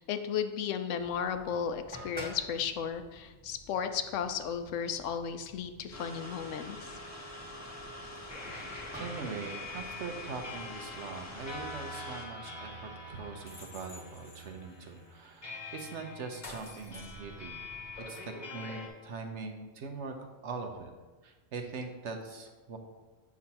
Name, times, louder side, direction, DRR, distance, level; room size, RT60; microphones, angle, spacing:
voice 1, 0.0-7.0, left 7 dB, 70° left, 9 dB, 0.9 m, -34 dB
sound 1, 1.0-11.7, equal, 5° right, 1.6 m, -51 dB
sound 2, 5.9-12.2, left 1 dB, 15° left, 0.5 m, -45 dB
sound 3, 8.3-18.9, left 2 dB, 35° left, 1.2 m, -45 dB
voice 2, 9.0-17.7 18.0-20.1 20.4-20.9 21.2-22.8, right 4 dB, 60° right, 4 dB, 1.0 m, -42 dB
8.5 x 6.0 x 2.9 m, 1.3 s
omnidirectional pair, 1.4 m